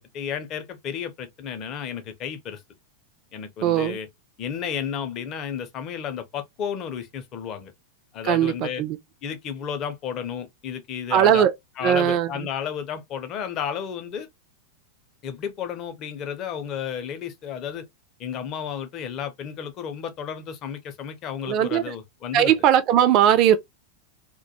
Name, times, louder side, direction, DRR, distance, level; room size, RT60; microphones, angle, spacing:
voice 1, 0.0-2.6 3.3-4.1 4.4-7.7 8.1-8.8 9.2-11.5 11.8-14.3 15.2-17.8 18.2-22.5, left 8 dB, 35° left, 0.5 m, -32 dB
voice 2, 3.6-4.0 8.2-9.0 11.1-11.5 11.8-12.3 21.5-21.9 22.3-23.6, right 10 dB, 40° right, 0.4 m, -19 dB
2.2 x 2.2 x 2.6 m
figure-of-eight pair, 90°, 0 cm